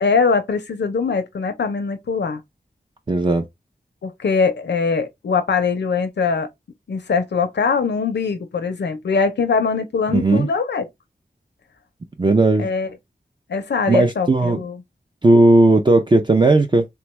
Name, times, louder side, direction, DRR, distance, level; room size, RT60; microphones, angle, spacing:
voice 1, 0.0-2.4 4.0-6.5 6.9-10.8 12.6-12.9 13.5-14.8, left 5 dB, 85° left, 0.5 m, -22 dB
voice 2, 3.1-3.4 10.1-10.5 12.2-12.7 13.9-14.6 15.2-16.8, right 2 dB, 25° right, 0.4 m, -15 dB
3.4 x 2.2 x 3.0 m
wide cardioid pair, 75°, 17 cm